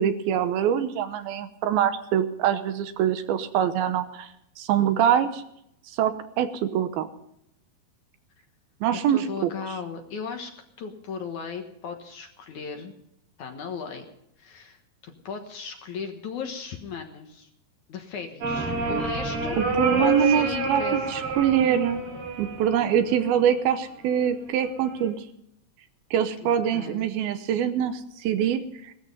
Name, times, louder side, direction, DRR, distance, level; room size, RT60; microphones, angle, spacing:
voice 1, 0.0-4.3 4.6-5.4 5.9-7.1 8.8-9.5 19.6-22.0 22.4-25.2 26.1-28.9, right 9 dB, 75° right, 10 dB, 2.7 m, -24 dB
voice 2, 9.1-10.5 10.8-12.9 13.4-14.1 14.4-17.5 17.9-19.6 20.0-21.0 26.4-27.2, left 5 dB, 60° left, 5 dB, 2.4 m, -36 dB
sound 1, 18.4-23.4 24.6-25.1, right 3 dB, 60° right, 5.6 m, -29 dB
18.0 x 13.5 x 5.4 m, 0.78 s
omnidirectional pair, 4.5 m